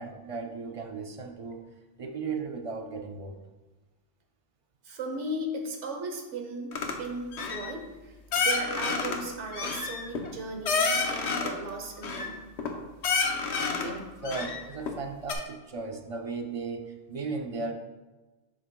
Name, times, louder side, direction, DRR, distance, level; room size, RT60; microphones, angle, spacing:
voice 1, 0.0-1.6 2.0-3.4 13.8-17.7, right 4 dB, 45° right, 4 dB, 0.4 m, -36 dB
voice 2, 4.8-12.5, right 2 dB, 90° right, 3 dB, 1.3 m, -37 dB
sound 1, 6.7-7.0 7.3-7.7 8.3-9.2 9.5-11.6 12.0-12.7 13.0-13.9 14.2-15.0 15.3-15.4, left 4 dB, 75° left, 1.1 m, -29 dB
7.3 x 6.8 x 2.3 m, 1.2 s
omnidirectional pair, 1.2 m